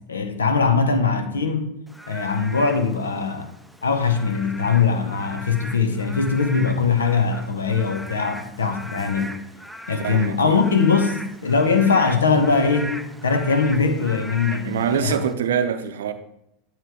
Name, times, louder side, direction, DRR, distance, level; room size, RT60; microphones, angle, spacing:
voice 1, 0.1-1.7 2.1-3.5 3.8-9.3 9.9-13.0 13.2-15.2, left 5 dB, 75° left, 0.8 m, -21 dB
Frog / Rain, 1.9-15.3, equal, ahead, 0.5 m, -39 dB
voice 2, 9.9-10.6 14.6-16.1, right 7 dB, 65° right, 0.6 m, -24 dB
9.0 x 3.1 x 4.9 m
figure-of-eight pair, 80°, 0 cm